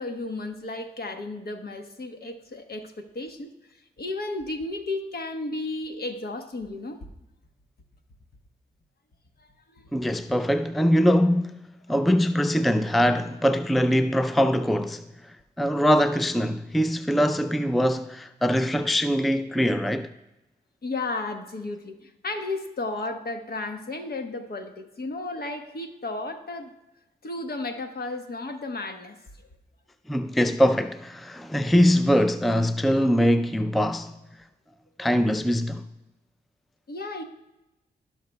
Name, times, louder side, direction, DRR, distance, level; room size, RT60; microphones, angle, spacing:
voice 1, 0.0-3.5 4.0-7.0 9.7-10.0 20.8-26.7 27.2-29.2 36.9-37.2, left 2 dB, 55° left, 1.2 m, -33 dB
voice 2, 9.9-11.6 11.9-20.1 30.1-34.1 35.0-35.8, equal, ahead, 0.4 m, -22 dB
16.0 x 5.8 x 2.3 m
supercardioid pair, 45°, 19 cm